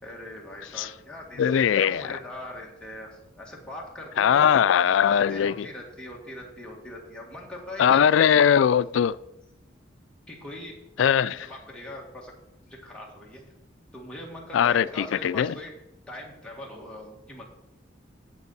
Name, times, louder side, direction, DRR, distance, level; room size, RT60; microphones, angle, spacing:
voice 1, 0.0-4.5 5.1-8.0 10.3-12.3 12.6-13.4 13.9-15.7 16.1-17.4, left 1 dB, 5° left, -3 dB, 1.7 m, -41 dB
voice 2, 1.4-2.2 4.2-5.7 7.8-9.2 11.0-11.4 14.5-15.5, left 8 dB, 90° left, 17 dB, 0.3 m, -20 dB
15.0 x 5.2 x 4.1 m, 0.87 s
head